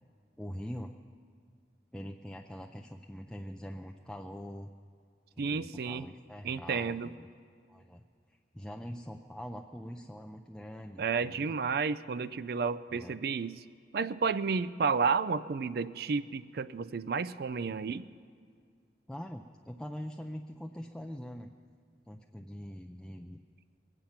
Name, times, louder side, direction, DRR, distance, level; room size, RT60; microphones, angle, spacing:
voice 1, 0.4-0.9 1.9-4.7 5.4-7.3 7.7-8.0 8.3-11.5 12.9-13.1 19.1-21.5 22.1-23.4, equal, 5° left, 3 dB, 0.4 m, -43 dB
voice 2, 5.4-6.1 6.4-7.1 11.0-13.6 13.9-18.0, right 5 dB, 60° right, 14 dB, 0.4 m, -31 dB
23.0 x 9.0 x 5.8 m, 2.2 s
head